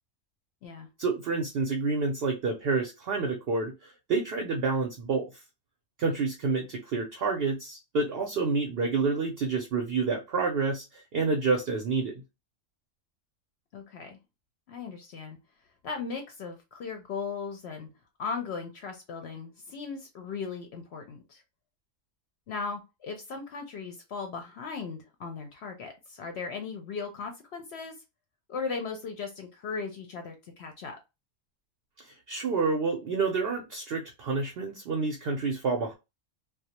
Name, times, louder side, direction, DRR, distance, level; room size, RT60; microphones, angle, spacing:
voice 1, 1.0-5.3 6.0-12.2 32.0-35.9, right 4 dB, 60° right, 0.7 m, -29 dB
voice 2, 13.7-14.2 14.7-15.4 15.8-17.9 18.2-21.4 22.5-27.9 28.5-31.0, left 5 dB, 65° left, 0.8 m, -37 dB
2.3 x 2.0 x 2.7 m
omnidirectional pair, 1.3 m